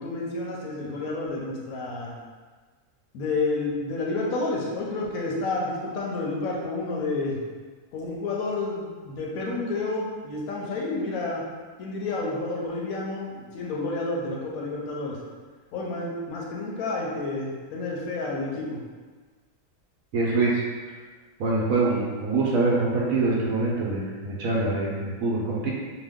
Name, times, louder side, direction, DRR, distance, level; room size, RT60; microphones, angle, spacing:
voice 1, 0.0-2.1 3.1-7.4 7.9-11.4 11.8-15.2 15.7-18.8, left 3 dB, 70° left, -2 dB, 1.0 m, -30 dB
voice 2, 20.1-20.6 21.4-25.7, right 3 dB, 65° right, -4 dB, 0.9 m, -24 dB
2.8 x 2.3 x 3.5 m, 1.4 s
omnidirectional pair, 1.7 m